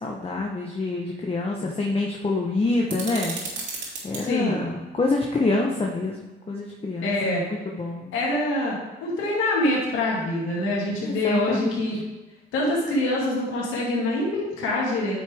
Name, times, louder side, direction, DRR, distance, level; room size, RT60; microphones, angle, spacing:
voice 1, 0.0-3.4 4.0-7.4 7.8-8.1 11.0-11.9, left 2 dB, 30° left, -1 dB, 1.1 m, -26 dB
sound 1, 2.9-4.2, right 3 dB, 65° right, 2.8 m, -33 dB
voice 2, 4.2-4.6 7.0-7.4 8.1-8.8 9.0-12.0 12.5-15.1, left 1 dB, 85° left, -5 dB, 2.3 m, -25 dB
9.5 x 6.1 x 3.6 m, 1.2 s
cardioid pair, 90°, 20 cm